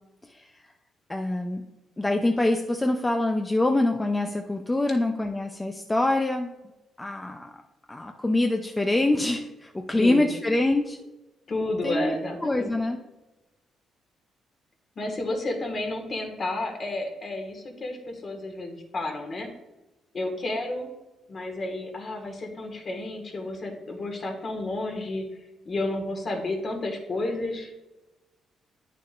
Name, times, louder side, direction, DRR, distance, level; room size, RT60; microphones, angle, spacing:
voice 1, 1.1-1.7 2.0-6.5 7.0-7.5 7.9-11.0 11.8-12.2 12.4-13.0, left 2 dB, 15° left, 4 dB, 0.5 m, -25 dB
voice 2, 10.0-10.3 11.5-12.8 15.0-19.5 20.1-20.9 21.3-25.3 25.7-27.7, left 2 dB, 45° left, 3 dB, 1.7 m, -31 dB
9.5 x 6.7 x 2.6 m, 1.0 s
cardioid pair, 90°, 0 cm